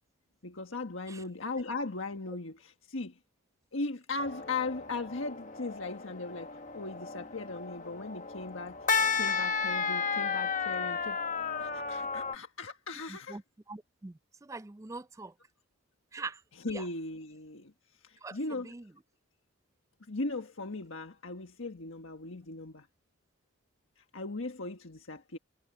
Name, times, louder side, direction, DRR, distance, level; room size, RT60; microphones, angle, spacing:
voice 1, 0.4-3.2 3.7-8.8 9.1-11.2 11.6-13.4 16.5-17.7 18.0-18.7 20.1-22.9 24.1-25.4, left 3 dB, 80° left, 1.5 m, -38 dB
sound 1, 4.2-12.4, left 5 dB, 40° left, 1.1 m, -33 dB
voice 2, 13.7-14.1 14.4-15.3 16.1-16.4 16.7-16.8 18.2-18.4 18.6-18.8, right 3 dB, 15° right, 0.4 m, -42 dB
head